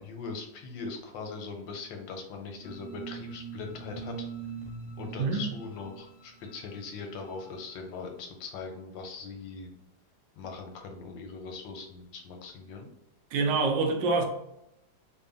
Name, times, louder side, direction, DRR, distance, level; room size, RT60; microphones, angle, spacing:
voice 1, 0.0-4.3 5.0-9.7 10.4-12.9, left 4 dB, 85° left, 1.4 m, -40 dB
sound 1, 2.6-7.8, right 5 dB, 70° left, 1.0 m, -43 dB
voice 2, 5.2-5.5 13.3-14.2, right 3 dB, 80° right, 1.3 m, -26 dB
3.5 x 2.2 x 3.7 m
omnidirectional pair, 2.0 m